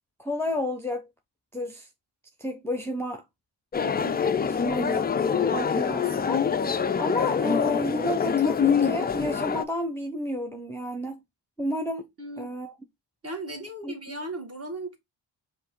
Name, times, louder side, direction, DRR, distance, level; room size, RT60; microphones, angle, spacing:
voice 1, 0.2-1.1 1.5-1.9 2.4-3.2 4.7-5.1 5.5-6.4 7.0-11.2 11.6-12.0 12.4-12.8 13.8-14.0, left 1 dB, 5° left, 0.7 m, -31 dB
sound 1, 3.7-9.6, left 7 dB, 25° left, 0.3 m, -25 dB
voice 2, 3.8-4.2 12.2-12.5 13.2-15.0, right 2 dB, 30° right, 1.7 m, -37 dB
5.0 x 2.7 x 3.7 m
cardioid pair, 80°, 45 cm